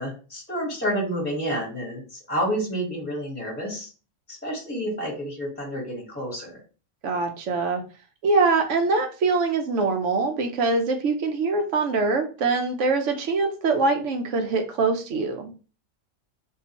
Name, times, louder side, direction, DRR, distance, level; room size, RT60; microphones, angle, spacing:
voice 1, 0.0-2.0 2.3-3.9 4.4-6.6, equal, 10° left, -5 dB, 1.1 m, -29 dB
voice 2, 7.0-7.8 8.2-15.5, right 3 dB, 75° right, 5 dB, 1.0 m, -23 dB
3.7 x 2.4 x 2.8 m, 0.35 s
omnidirectional pair, 1.3 m